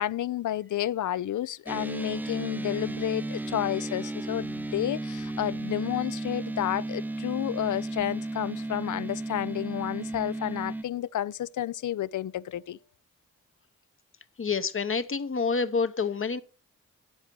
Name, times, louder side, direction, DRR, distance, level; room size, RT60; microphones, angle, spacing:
voice 1, 0.0-12.8, left 12 dB, 70° left, 0.5 m, -31 dB
sound 1, 1.7-10.8, right 2 dB, 5° right, 0.4 m, -34 dB
voice 2, 14.4-16.4, left 5 dB, 45° left, 0.9 m, -28 dB
8.8 x 8.0 x 4.5 m
wide cardioid pair, 90°, 31 cm